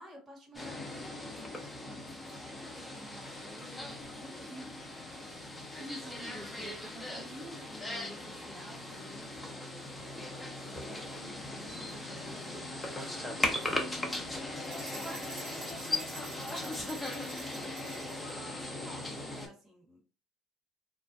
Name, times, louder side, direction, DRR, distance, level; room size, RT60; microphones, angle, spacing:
voice 1, 0.0-4.6 10.0-20.1, equal, 20° right, -3 dB, 1.3 m, -52 dB
sound 1, 0.5-19.5, left 1 dB, 10° left, 0.7 m, -39 dB
voice 2, 5.6-9.6, equal, 50° right, 1 dB, 0.9 m, -48 dB
sound 2, 14.6-18.3, right 2 dB, 85° right, 1.0 m, -48 dB
2.4 x 2.1 x 2.5 m, 0.34 s
hypercardioid pair, 70°, 0 cm